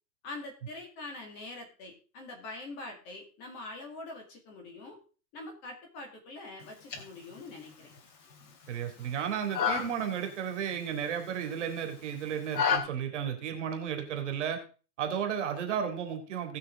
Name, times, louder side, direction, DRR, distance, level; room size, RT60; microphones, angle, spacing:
voice 1, 0.2-5.0 5.3-7.9, left 2 dB, 20° left, 2 dB, 2.0 m, -44 dB
sound 1, 6.6-12.8, left 7 dB, 90° left, 2.8 m, -35 dB
voice 2, 8.7-14.6 15.0-16.6, right 8 dB, 45° right, 5 dB, 2.3 m, -33 dB
18.0 x 6.0 x 3.6 m, 0.36 s
hypercardioid pair, 165°, 49 cm